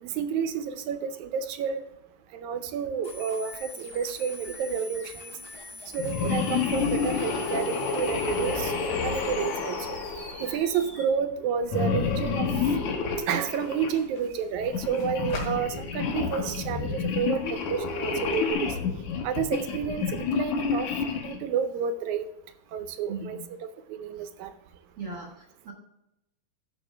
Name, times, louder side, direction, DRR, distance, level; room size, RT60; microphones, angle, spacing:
voice 1, 0.0-1.8 2.3-5.3 5.9-10.0 10.4-12.5 13.3-18.8 19.2-20.9 21.2-22.3 22.7-24.5, right 7 dB, 80° right, 10 dB, 2.0 m, -30 dB
sound 1, 3.0-11.0, left 2 dB, 35° left, 2.8 m, -44 dB
sound 2, 6.0-10.8 11.7-14.0 14.6-21.4, left 5 dB, 70° left, 2.5 m, -29 dB
sound 3, 12.4-18.5, left 2 dB, 90° left, 3.8 m, -46 dB
voice 2, 23.1-23.5 25.0-25.7, right 3 dB, 45° right, 0 dB, 1.6 m, -38 dB
14.5 x 5.4 x 3.3 m, 0.85 s
omnidirectional pair, 3.6 m